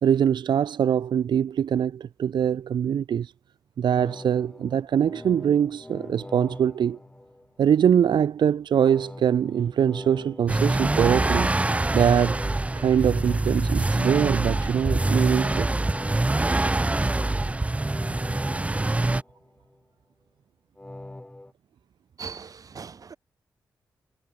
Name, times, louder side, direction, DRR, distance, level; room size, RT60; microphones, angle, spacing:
voice 1, 0.0-3.3 3.8-7.0 7.6-11.5 11.9-12.4 12.8-15.7, right 8 dB, 80° right, 0.9 m, -23 dB
sound 1, 4.0-7.8 8.8-13.8 14.8-19.8 20.8-21.5, left 1 dB, 10° left, 4.6 m, -43 dB
sound 2, 10.5-19.2, right 2 dB, 15° right, 3.0 m, -24 dB
voice 2, 22.2-23.2, right 5 dB, 50° right, 4.6 m, -39 dB
wide cardioid pair, 140°, 8 cm